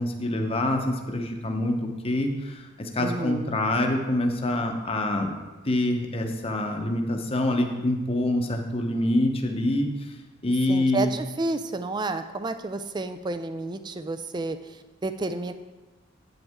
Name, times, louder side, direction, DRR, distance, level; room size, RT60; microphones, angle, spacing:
voice 1, 0.0-1.8 2.0-2.3 3.0-5.3 5.7-9.9 10.4-11.1, left 1 dB, 25° left, 4 dB, 0.8 m, -25 dB
voice 2, 3.0-3.5 10.7-15.5, right 2 dB, 20° right, 10 dB, 0.3 m, -31 dB
8.4 x 8.0 x 3.6 m, 1.2 s
head